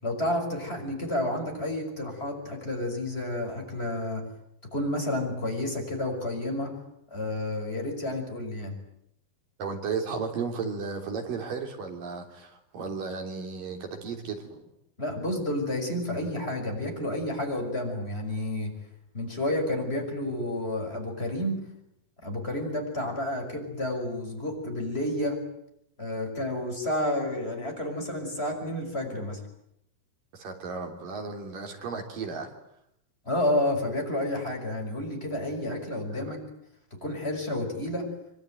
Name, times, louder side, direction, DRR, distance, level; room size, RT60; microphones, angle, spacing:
voice 1, 0.0-4.2 4.7-6.8 7.1-8.7 15.0-18.7 19.1-21.6 22.2-25.4 26.0-29.4 33.3-36.4 37.0-38.1, left 1 dB, 15° left, 2 dB, 5.9 m, -30 dB
voice 2, 9.6-14.6 30.3-32.5, right 5 dB, 65° right, 4 dB, 5.0 m, -34 dB
25.0 x 24.5 x 9.2 m, 0.77 s
omnidirectional pair, 4.3 m